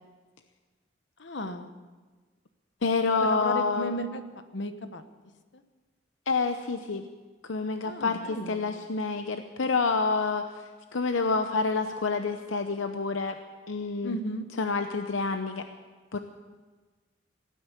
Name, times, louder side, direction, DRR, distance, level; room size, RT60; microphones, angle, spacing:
voice 1, 1.2-1.7 3.2-4.2 4.5-5.0 7.8-8.7 14.0-14.4, equal, 65° left, 9 dB, 1.1 m, -34 dB
voice 2, 2.8-4.0 6.3-7.1 7.5-10.4 10.9-13.4 13.7-14.2 14.6-15.6 16.1-16.2, left 4 dB, 80° left, 7 dB, 0.8 m, -28 dB
17.0 x 9.4 x 8.3 m, 1.4 s
head